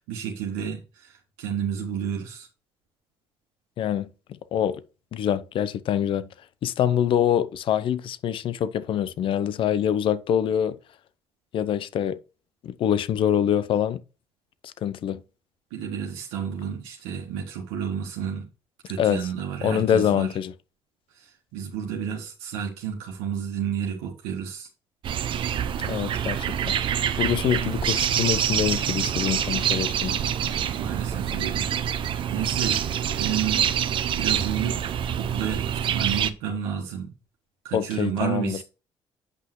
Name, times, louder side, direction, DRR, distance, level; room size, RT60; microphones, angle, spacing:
voice 1, 0.0-2.5 15.7-18.5 18.9-20.4 21.1-24.7 30.8-31.8 32.3-32.8 33.2-33.7 34.1-34.8 35.2-37.1 37.6-38.6, right 8 dB, 85° right, 1.3 m, -31 dB
voice 2, 3.8-4.1 4.5-4.8 5.1-6.3 6.6-10.8 11.5-12.2 12.6-14.0 14.8-15.2 19.0-19.2 19.6-20.5 25.8-26.7 27.2-30.2 37.7-38.6, left 9 dB, 60° left, 0.7 m, -25 dB
sound 1, 25.0-36.3, right 9 dB, 60° right, 0.6 m, -26 dB
8.5 x 5.6 x 3.0 m
supercardioid pair, 65°, 10 cm